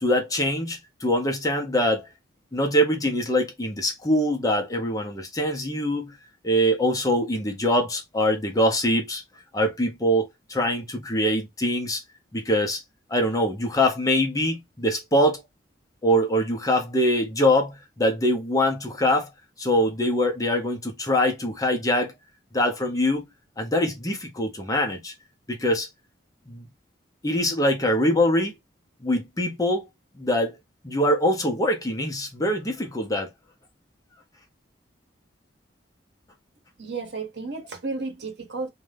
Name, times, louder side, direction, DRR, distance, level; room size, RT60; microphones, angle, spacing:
voice 1, 0.0-2.1 2.5-6.2 6.4-9.2 9.5-12.0 12.3-12.8 13.1-15.4 16.0-19.3 19.6-22.1 22.5-23.2 23.6-25.1 25.5-25.9 26.5-26.6 27.2-28.5 29.0-29.9 30.2-30.6 30.8-33.3, equal, 20° left, 0.6 m, -23 dB
voice 2, 36.8-38.7, right 3 dB, 65° right, 0.9 m, -32 dB
2.5 x 2.2 x 3.3 m
head